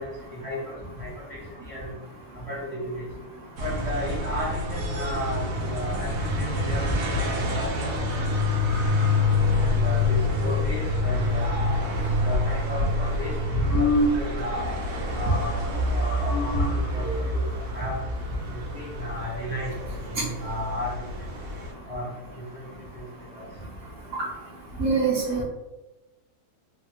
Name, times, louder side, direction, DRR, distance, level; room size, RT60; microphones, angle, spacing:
voice 1, 0.0-1.9 2.3-3.0 3.6-6.8 7.1-7.7 9.6-11.5 12.2-13.9 14.2-14.7 15.1-18.0 18.5-19.7 20.1-21.1 21.9-22.1 22.5-22.7 22.9-23.0 23.3-23.4, equal, 30° left, -8 dB, 0.7 m, -34 dB
sound 1, 3.6-21.7, left 2 dB, 85° right, 1.2 m, -27 dB
sound 2, 13.6-14.6 14.8-15.1 15.4-18.6, equal, 75° left, 1.0 m, -27 dB
voice 2, 24.8-25.4, right 4 dB, 65° right, -3 dB, 0.9 m, -24 dB
3.2 x 2.2 x 2.8 m, 1.0 s
omnidirectional pair, 1.6 m